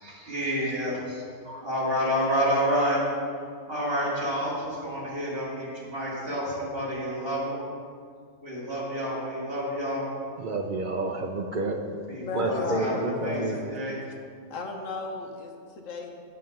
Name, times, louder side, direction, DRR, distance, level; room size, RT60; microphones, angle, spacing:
voice 1, 0.0-3.0 3.7-7.6 8.4-10.0 12.1-12.9 13.2-13.4 13.7-14.0, equal, 40° right, -6 dB, 2.4 m, -29 dB
voice 2, 10.4-13.6, right 2 dB, 75° right, 2 dB, 0.4 m, -30 dB
voice 3, 12.2-13.5 14.5-16.2, left 3 dB, 60° left, 3 dB, 1.1 m, -35 dB
7.8 x 6.3 x 5.3 m, 2.2 s
omnidirectional pair, 1.6 m